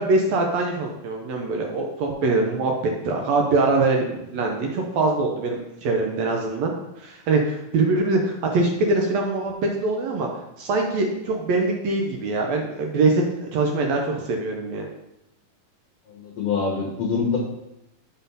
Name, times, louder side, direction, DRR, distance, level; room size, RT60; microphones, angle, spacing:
voice 1, 0.0-2.7 3.0-10.3 10.6-14.9, right 3 dB, 75° right, 1 dB, 1.6 m, -23 dB
voice 2, 16.1-17.4, left 5 dB, 60° left, -2 dB, 1.7 m, -25 dB
7.7 x 4.3 x 5.4 m, 0.87 s
omnidirectional pair, 4.0 m